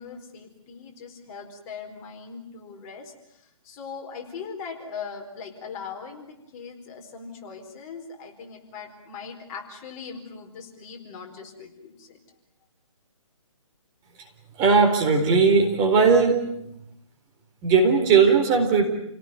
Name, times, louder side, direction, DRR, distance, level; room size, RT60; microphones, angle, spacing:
voice 1, 0.0-12.2, left 5 dB, 30° left, 2 dB, 4.6 m, -40 dB
voice 2, 14.6-16.4 17.6-18.8, right 5 dB, 20° right, 3 dB, 4.2 m, -18 dB
30.0 x 18.5 x 9.6 m, 0.81 s
hypercardioid pair, 150°, 17 cm